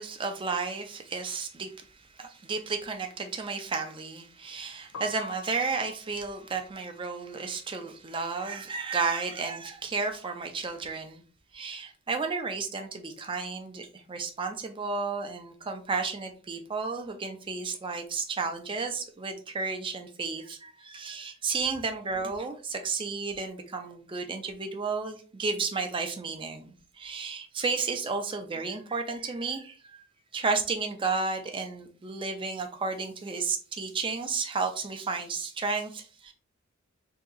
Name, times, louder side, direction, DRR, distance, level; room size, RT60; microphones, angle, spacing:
voice 1, 0.0-11.2 11.5-30.1 30.3-36.3, right 4 dB, 25° right, 5 dB, 0.4 m, -32 dB
Piano, 4.8-10.7 11.0-12.6 12.9-19.3, left 3 dB, 65° left, 0.5 m, -50 dB
3.7 x 2.8 x 2.4 m, 0.40 s
head